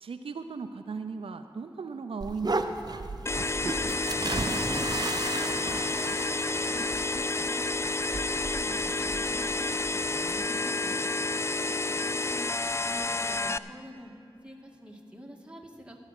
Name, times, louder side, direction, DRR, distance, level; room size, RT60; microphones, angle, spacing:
voice 1, 0.0-3.0 11.4-12.1, right 5 dB, 90° right, 8 dB, 0.4 m, -38 dB
sound 1, 2.2-10.5, right 3 dB, 45° right, 0.7 m, -35 dB
sound 2, 3.3-13.6, left 2 dB, 30° left, 0.4 m, -30 dB
voice 2, 4.2-5.0 5.3-7.6 8.0-11.1 12.1-14.1 14.4-16.0, equal, 10° right, 0 dB, 1.9 m, -46 dB
15.5 x 7.3 x 6.6 m, 2.9 s
cardioid pair, 40°, 9 cm